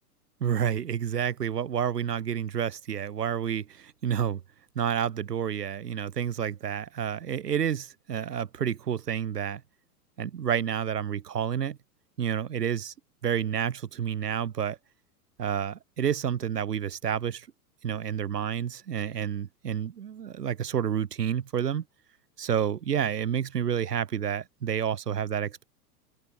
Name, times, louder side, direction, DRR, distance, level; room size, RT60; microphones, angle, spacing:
voice 1, 0.4-4.4 4.7-9.6 10.2-11.8 12.2-12.9 13.2-14.8 15.4-17.5 17.8-21.8 22.4-25.6, right 8 dB, 90° right, 1.2 m, -29 dB
open air
hypercardioid pair, 100°, 47 cm